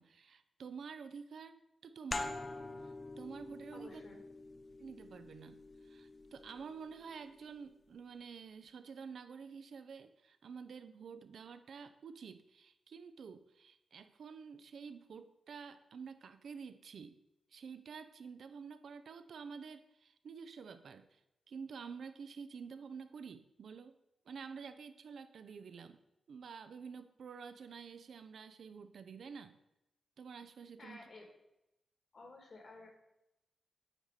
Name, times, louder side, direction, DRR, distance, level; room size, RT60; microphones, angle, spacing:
voice 1, 0.0-2.4 3.2-4.0 4.8-5.6 5.8-17.2 17.5-21.1 21.5-24.0 24.3-26.0 26.3-29.6 30.2-31.0, right 6 dB, 65° right, 11 dB, 0.5 m, -49 dB
sound 1, 2.1-7.4, left 2 dB, 25° left, 0.5 m, -46 dB
voice 2, 3.7-4.2 30.8-31.3 32.1-32.9, left 2 dB, 45° left, 2 dB, 1.5 m, -53 dB
8.7 x 4.2 x 4.7 m, 0.88 s
wide cardioid pair, 155°, 0 cm